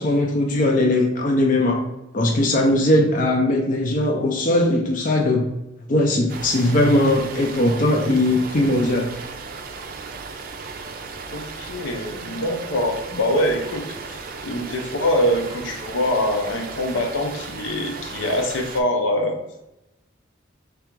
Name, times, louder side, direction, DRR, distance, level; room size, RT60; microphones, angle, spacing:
voice 1, 0.0-1.8 2.1-5.5 5.9-9.1, left 1 dB, 45° left, 1 dB, 0.5 m, -19 dB
sound 1, 6.3-18.8, right 4 dB, 50° right, 0.4 m, -36 dB
voice 2, 11.3-19.4, left 1 dB, 85° left, 3 dB, 0.7 m, -24 dB
3.4 x 2.5 x 4.5 m, 0.91 s
head